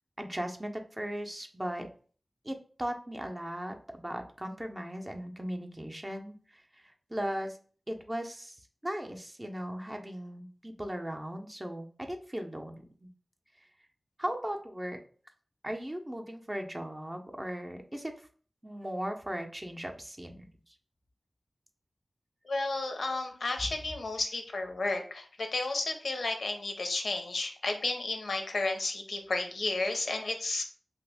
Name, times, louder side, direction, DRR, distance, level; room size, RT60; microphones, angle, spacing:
voice 1, 0.2-1.9 2.4-6.6 7.1-7.6 7.9-8.6 8.8-13.1 14.2-15.0 15.6-18.1 18.6-20.5, equal, 20° right, 3 dB, 0.5 m, -37 dB
voice 2, 22.4-30.6, left 2 dB, 85° left, 5 dB, 0.5 m, -32 dB
2.8 x 2.4 x 3.4 m, 0.43 s
wide cardioid pair, 75°, 0 cm